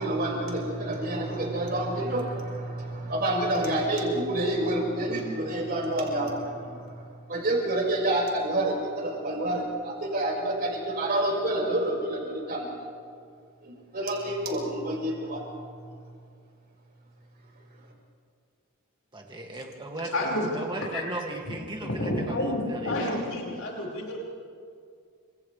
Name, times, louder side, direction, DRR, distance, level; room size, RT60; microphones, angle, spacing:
voice 1, 0.0-12.9 13.6-15.4, right 1 dB, 45° right, -2 dB, 5.7 m, -28 dB
voice 2, 19.1-23.1, right 1 dB, 25° right, 0 dB, 2.3 m, -37 dB
voice 3, 20.0-20.5 20.8-21.0 21.5-21.6 21.8-24.2, left 1 dB, 80° left, -3 dB, 5.4 m, -30 dB
30.0 x 26.5 x 3.4 m, 2.2 s
head